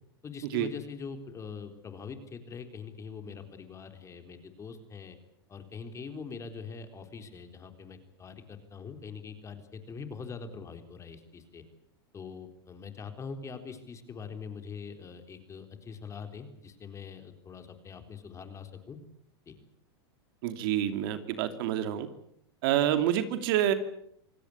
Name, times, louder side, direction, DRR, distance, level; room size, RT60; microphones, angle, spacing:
voice 1, 0.2-5.2 5.5-11.6 12.1-19.0 19.5-19.6, left 5 dB, 20° left, 7 dB, 3.9 m, -43 dB
voice 2, 20.4-22.1 22.6-23.7, right 11 dB, 60° right, 9 dB, 2.8 m, -27 dB
27.5 x 17.5 x 8.7 m, 0.72 s
hypercardioid pair, 120°, 13 cm